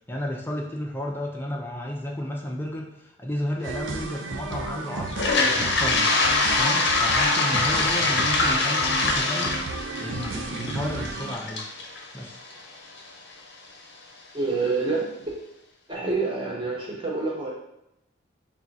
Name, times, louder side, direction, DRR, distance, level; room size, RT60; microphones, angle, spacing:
voice 1, 0.1-5.2 5.6-6.1 6.6-9.6 10.0-11.7 12.1-12.4, left 1 dB, 10° left, -1 dB, 0.5 m, -32 dB
sound 1, 3.6-11.3, right 4 dB, 75° right, 0.4 m, -34 dB
Toilet flush, 5.1-13.0, left 3 dB, 65° left, 0.6 m, -24 dB
voice 2, 14.3-15.3 15.9-17.5, right 3 dB, 25° right, -5 dB, 1.1 m, -27 dB
3.7 x 2.3 x 4.1 m, 0.83 s
head